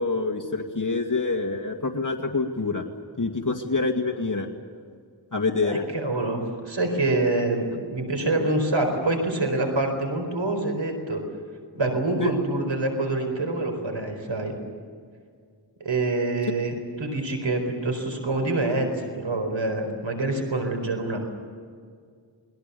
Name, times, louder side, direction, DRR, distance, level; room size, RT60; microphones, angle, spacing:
voice 1, 0.0-2.8 3.2-4.5 5.3-5.9 12.2-12.3, left 3 dB, 45° left, 1 dB, 2.3 m, -26 dB
voice 2, 5.6-11.2 11.7-14.5 15.8-21.2, right 2 dB, 85° right, 4 dB, 4.5 m, -26 dB
28.5 x 21.5 x 7.0 m, 2.1 s
wide cardioid pair, 60°, 44 cm